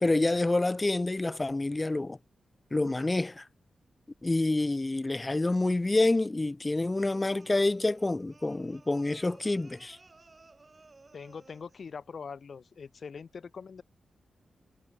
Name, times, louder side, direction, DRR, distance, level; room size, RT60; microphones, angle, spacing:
voice 1, 0.0-2.2 2.7-3.4 4.2-10.0, left 2 dB, 25° left, 0.4 m, -27 dB
sound 1, 7.0-11.9, right 3 dB, 35° right, 5.6 m, -57 dB
voice 2, 11.1-13.8, left 5 dB, 60° left, 2.0 m, -43 dB
cardioid pair, 75°, 0 cm